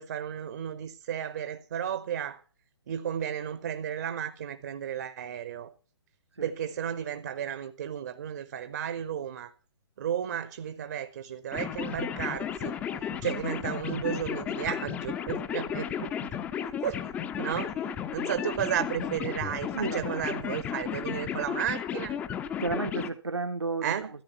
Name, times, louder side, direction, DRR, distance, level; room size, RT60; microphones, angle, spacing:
voice 1, 0.0-2.4 2.9-5.7 6.4-9.5 10.0-12.8 13.2-16.4 16.8-17.1 17.4-22.2 23.8-24.1, right 9 dB, 40° right, 0.9 m, -33 dB
sound 1, 11.5-23.1, left 8 dB, 10° left, 0.6 m, -34 dB
voice 2, 19.7-20.3 22.6-23.9, right 3 dB, 70° right, 1.2 m, -32 dB
13.5 x 10.5 x 5.6 m
figure-of-eight pair, 130°, 14 cm